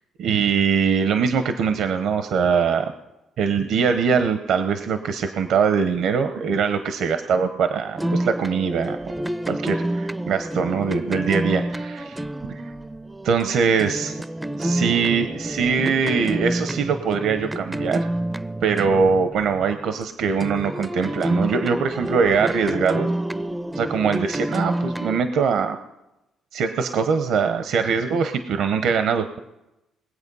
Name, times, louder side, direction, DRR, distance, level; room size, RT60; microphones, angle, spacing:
voice 1, 0.2-2.9 3.4-9.1 9.5-12.2 13.2-14.2 14.6-18.1 18.6-23.1 23.7-25.8 26.5-29.4, right 6 dB, 70° right, 9 dB, 0.8 m, -22 dB
sound 1, 8.0-20.0 20.4-25.2, right 1 dB, 10° right, 0.4 m, -28 dB
21.0 x 8.0 x 5.4 m, 0.97 s
cardioid pair, 100°, 0 cm